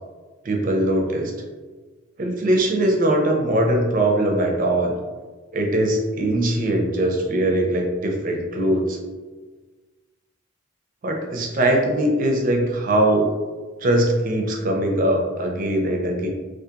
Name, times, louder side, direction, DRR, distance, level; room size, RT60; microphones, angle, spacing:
voice 1, 0.4-1.3 2.2-4.9 5.5-9.0 11.0-13.3 13.8-16.3, right 1 dB, 40° right, 1 dB, 0.4 m, -21 dB
2.7 x 2.4 x 2.4 m, 1.3 s
head